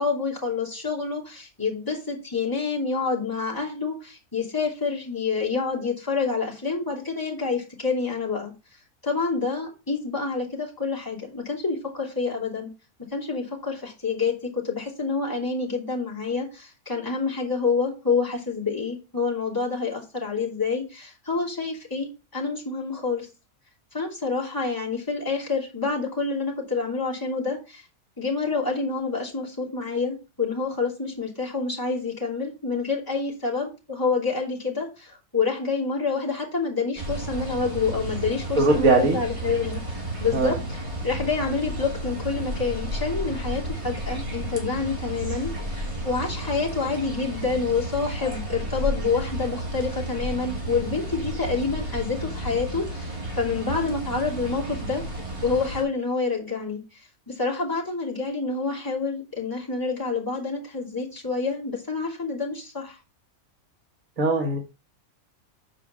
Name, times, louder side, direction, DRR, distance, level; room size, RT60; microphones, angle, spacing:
voice 1, 0.0-8.5 9.0-12.7 13.1-23.3 23.9-27.8 28.2-55.0 55.4-56.8 57.3-63.0, left 4 dB, 15° left, -4 dB, 2.9 m, -28 dB
sound 1, 37.0-55.8, right 1 dB, 20° right, 2.4 m, -32 dB
voice 2, 38.6-39.2 40.3-40.6 64.2-64.6, right 3 dB, 65° right, 1 dB, 1.8 m, -20 dB
7.3 x 4.8 x 6.1 m, 0.29 s
omnidirectional pair, 1.5 m